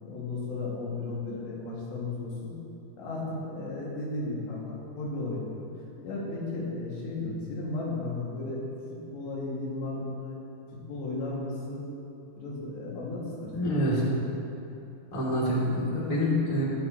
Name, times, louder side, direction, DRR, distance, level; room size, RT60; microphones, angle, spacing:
voice 1, 0.0-2.5 3.0-5.7 6.0-8.6 9.1-10.4 10.9-11.8 12.4-13.9, left 2 dB, 85° left, -5 dB, 4.4 m, -34 dB
voice 2, 13.5-14.0 15.1-16.6, equal, 15° left, -6 dB, 1.7 m, -26 dB
21.5 x 8.4 x 3.0 m, 2.9 s
omnidirectional pair, 4.9 m